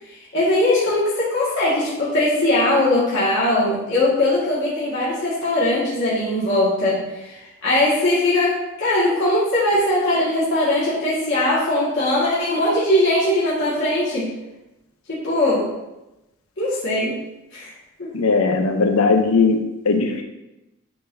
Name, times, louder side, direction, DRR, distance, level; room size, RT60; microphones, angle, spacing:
voice 1, 0.1-14.3 15.1-15.7 16.6-17.2 17.5-17.7 18.0-18.1, left 1 dB, 60° left, -9 dB, 1.8 m, -20 dB
voice 2, 18.1-20.2, left 4 dB, 90° left, 4 dB, 0.7 m, -18 dB
10.0 x 3.8 x 2.7 m, 0.97 s
head